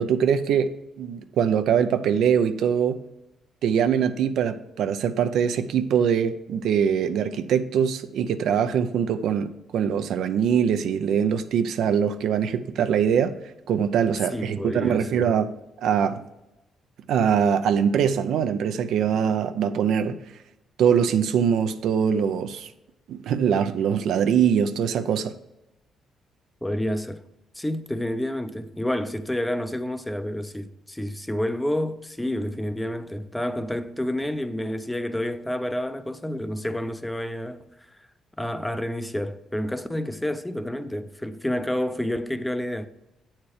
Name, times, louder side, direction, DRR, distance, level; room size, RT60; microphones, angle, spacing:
voice 1, 0.0-3.0 3.6-13.3 13.7-16.2 17.1-20.2 20.8-22.7 23.1-25.3, right 8 dB, 75° right, 0.5 m, -23 dB
voice 2, 14.3-15.3 26.6-27.2 27.5-38.0 38.4-42.9, left 1 dB, 5° left, 0.5 m, -29 dB
8.4 x 4.4 x 4.7 m
cardioid pair, 90°, 0 cm